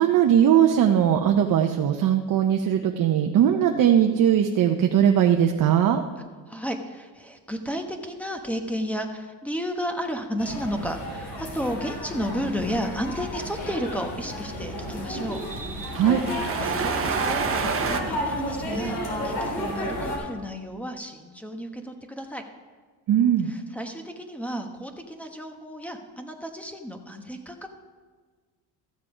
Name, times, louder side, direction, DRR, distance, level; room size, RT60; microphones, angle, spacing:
voice 1, 0.0-6.0 15.9-16.2 23.1-23.5, right 9 dB, 50° right, 4 dB, 0.7 m, -20 dB
voice 2, 6.5-15.4 16.6-22.4 23.5-27.7, equal, 5° left, 5 dB, 1.1 m, -32 dB
sound 1, 10.4-20.2, equal, 85° left, 3.5 m, -32 dB
sound 2, 10.8-18.0, right 6 dB, 30° right, 1.0 m, -31 dB
14.0 x 7.4 x 5.0 m, 1.5 s
cardioid pair, 110°, 42 cm